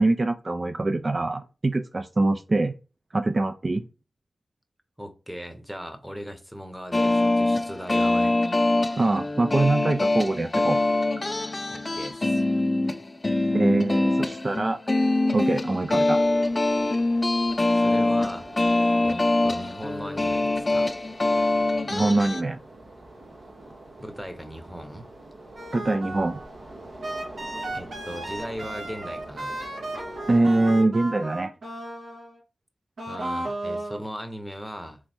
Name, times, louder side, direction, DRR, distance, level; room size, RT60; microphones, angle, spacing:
voice 1, 0.0-2.7 3.1-3.8 9.0-10.8 13.5-14.8 15.3-16.2 21.9-22.6 25.7-26.4 30.3-31.5, right 2 dB, 45° right, 0.4 m, -23 dB
voice 2, 5.0-8.4 11.7-12.4 17.7-18.5 19.0-20.9 24.0-25.0 27.7-29.6 33.1-35.0, equal, 5° right, 0.9 m, -38 dB
sound 1, 6.9-22.4, left 2 dB, 35° left, 0.5 m, -24 dB
sound 2, 16.1-30.6, right 1 dB, 65° right, 1.2 m, -45 dB
sound 3, 25.6-26.5 27.0-32.4 33.0-34.0, right 1 dB, 90° right, 1.7 m, -34 dB
3.5 x 3.1 x 4.3 m
cardioid pair, 50°, 0 cm